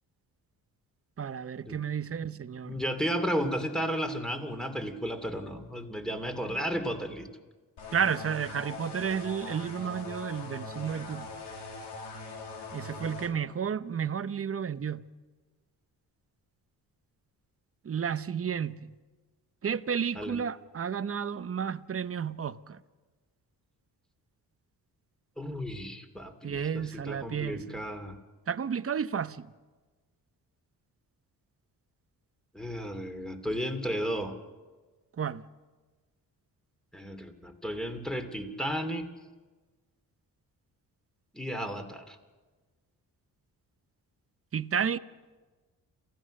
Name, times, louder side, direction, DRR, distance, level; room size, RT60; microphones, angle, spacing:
voice 1, 1.2-2.8 7.9-11.3 12.7-15.1 17.8-18.9 19.6-22.8 26.4-27.8 28.5-29.5 35.2-35.4 44.5-45.0, right 7 dB, 35° right, 0.7 m, -32 dB
voice 2, 2.6-7.3 20.1-20.4 25.4-28.2 32.5-34.4 36.9-39.1 41.3-42.2, equal, ahead, 2.7 m, -33 dB
sound 1, 7.8-13.3, left 3 dB, 90° left, 2.5 m, -41 dB
27.0 x 16.0 x 6.4 m
cardioid pair, 75°, 39 cm